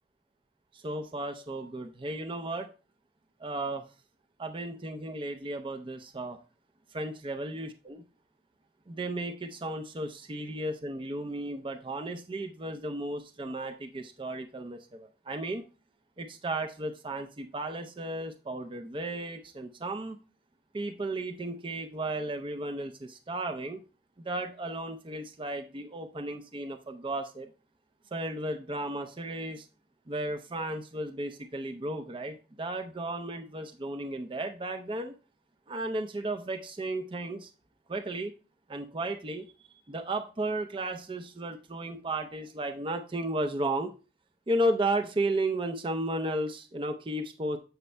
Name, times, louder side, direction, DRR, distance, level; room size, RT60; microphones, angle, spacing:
voice 1, 0.7-2.7 3.4-3.8 4.4-6.4 6.9-8.0 8.9-15.6 16.2-20.2 20.7-23.8 24.2-27.5 28.1-29.6 30.1-35.1 35.7-37.5 37.9-38.3 38.7-39.5 39.9-43.9 44.5-47.6, right 1 dB, 30° right, 5 dB, 0.5 m, -34 dB
7.9 x 5.3 x 3.3 m, 0.33 s
head